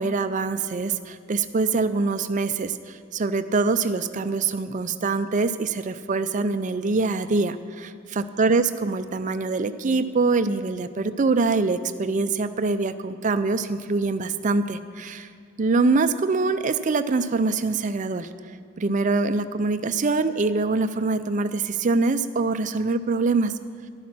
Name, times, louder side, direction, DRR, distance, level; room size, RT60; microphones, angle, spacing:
voice 1, 0.0-15.3 15.6-18.3 18.8-23.5, right 3 dB, 35° right, 11 dB, 0.4 m, -24 dB
11.5 x 10.5 x 6.0 m, 2.1 s
head